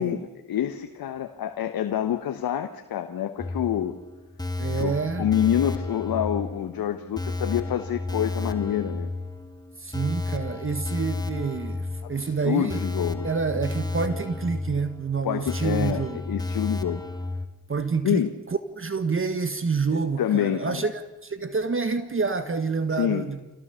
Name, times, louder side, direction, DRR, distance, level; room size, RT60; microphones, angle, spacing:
voice 1, 0.0-4.0 4.8-4.9 5.2-9.1 12.2-13.3 15.2-17.0 18.0-18.3 20.2-20.9 22.9-23.3, left 10 dB, 70° left, 7 dB, 1.2 m, -27 dB
sound 1, 3.4-17.5, left 2 dB, 10° left, 1.7 m, -32 dB
voice 2, 4.6-5.3 9.8-12.8 13.2-16.2 17.7-23.4, right 4 dB, 35° right, 10 dB, 1.5 m, -28 dB
26.0 x 17.5 x 6.9 m, 1.0 s
supercardioid pair, 45°, 36 cm